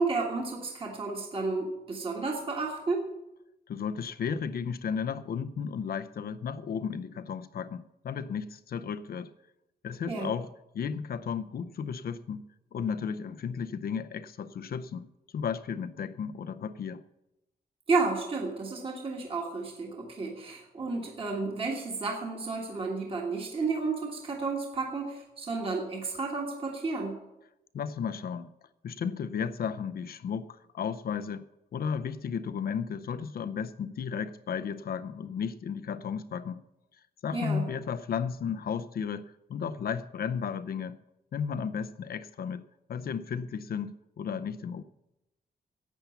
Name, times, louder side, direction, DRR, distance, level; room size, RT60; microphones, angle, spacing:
voice 1, 0.0-3.0 10.1-10.3 17.9-27.1 37.3-37.7, right 3 dB, 30° right, 0 dB, 1.6 m, -32 dB
voice 2, 3.7-9.3 9.8-10.5 10.7-12.4 12.7-15.1 15.3-17.0 27.7-28.5 28.8-31.5 31.7-36.6 37.2-39.2 39.5-41.0 41.3-42.6 42.9-44.8, left 7 dB, 60° left, 12 dB, 0.6 m, -34 dB
11.5 x 8.4 x 7.0 m, 0.90 s
wide cardioid pair, 175°, 18 cm